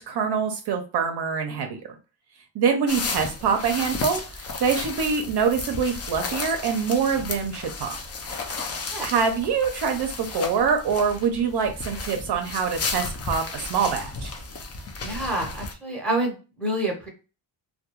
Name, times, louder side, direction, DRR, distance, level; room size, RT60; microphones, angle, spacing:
voice 1, 0.0-1.8 2.5-8.0 9.0-14.3, right 6 dB, 60° right, 5 dB, 0.5 m, -25 dB
sound 1, 2.9-15.7, left 4 dB, 35° left, 0.4 m, -33 dB
voice 2, 15.0-17.1, right 1 dB, 5° left, -1 dB, 0.7 m, -28 dB
2.2 x 2.2 x 2.8 m, 0.34 s
cardioid pair, 135°, 46 cm